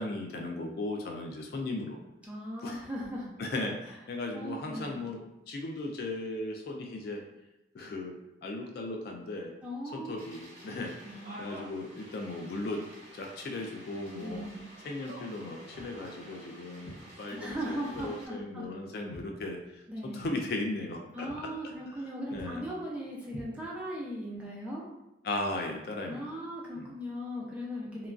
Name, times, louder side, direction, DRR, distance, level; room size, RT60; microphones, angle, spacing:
voice 1, 0.0-2.0 2.6-2.8 3.4-7.2 7.7-8.1 8.4-9.5 9.8-12.8 13.1-14.5 14.8-19.6 20.0-21.3 21.9-22.0 22.3-22.6 25.2-26.2 26.7-26.9, left 2 dB, 55° left, 2 dB, 0.3 m, -37 dB
voice 2, 2.2-3.3 4.3-5.0 9.6-10.1 11.0-11.3 14.2-14.6 17.3-18.6 19.9-20.3 21.1-24.8 26.1-28.1, equal, 5° right, -5 dB, 0.5 m, -38 dB
sound 1, 10.2-18.3, right 1 dB, 40° right, 0.8 m, -50 dB
Walk footsteps, 15.7-16.0 16.8-17.1 17.9-18.2 18.5-19.9 20.2-20.4 20.8-21.0 21.3-21.5 21.8-22.0 22.3-22.5 23.3-24.0, right 1 dB, 30° left, 0.7 m, -48 dB
2.9 x 2.3 x 2.4 m, 0.91 s
head